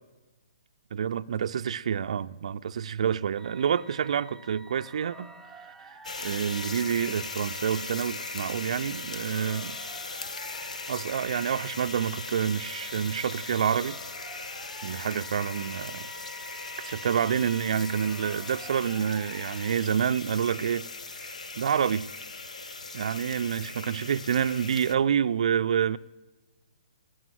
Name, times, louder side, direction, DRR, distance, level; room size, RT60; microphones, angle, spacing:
voice 1, 0.9-5.3 5.6-9.8 10.9-14.0 14.8-16.1 16.5-20.9 21.2-22.1 22.9-26.0, right 8 dB, 65° right, 0.4 m, -28 dB
sound 1, 3.4-19.7, right 1 dB, 5° right, 0.6 m, -49 dB
sound 2, 6.0-24.9, left 3 dB, 80° left, 0.8 m, -39 dB
12.5 x 7.9 x 9.3 m
hypercardioid pair, 140°, 4 cm